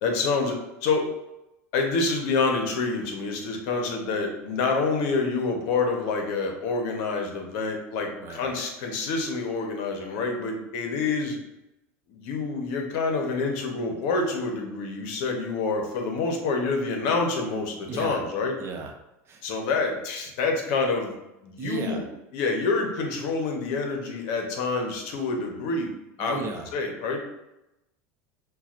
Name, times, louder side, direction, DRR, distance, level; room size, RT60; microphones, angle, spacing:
voice 1, 0.0-1.1 1.7-11.4 12.1-18.5 19.4-21.1 21.4-22.0 22.3-25.9 26.2-27.2, left 4 dB, 65° left, 3 dB, 0.9 m, -27 dB
voice 2, 17.9-18.2 18.6-18.9 19.2-19.5 21.6-22.1 26.2-26.7, right 4 dB, 35° right, 3 dB, 0.7 m, -34 dB
5.6 x 2.3 x 2.5 m, 0.91 s
supercardioid pair, 115°, 8 cm